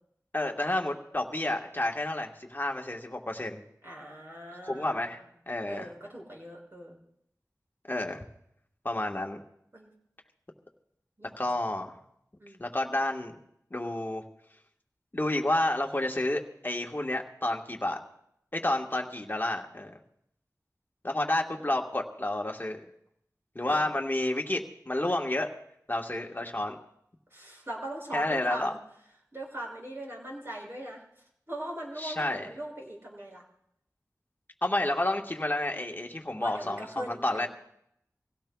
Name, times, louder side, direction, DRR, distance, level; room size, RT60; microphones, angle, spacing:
voice 1, 0.3-3.6 4.6-5.2 5.5-5.9 7.9-8.2 8.8-9.4 11.4-11.9 12.6-13.4 13.7-14.2 15.1-18.0 18.5-19.9 21.0-22.8 23.5-25.5 25.9-26.8 28.1-28.7 32.0-32.5 34.6-37.5, left 1 dB, 30° left, 2 dB, 1.4 m, -30 dB
voice 2, 3.8-5.2 5.7-7.0 9.7-9.9 11.2-11.4 12.4-12.6 23.7-23.9 27.3-28.8 29.3-31.0 31.5-33.4 36.4-37.5, right 1 dB, 40° right, -2 dB, 6.3 m, -40 dB
25.0 x 16.5 x 2.3 m, 0.74 s
wide cardioid pair, 50°, 6 cm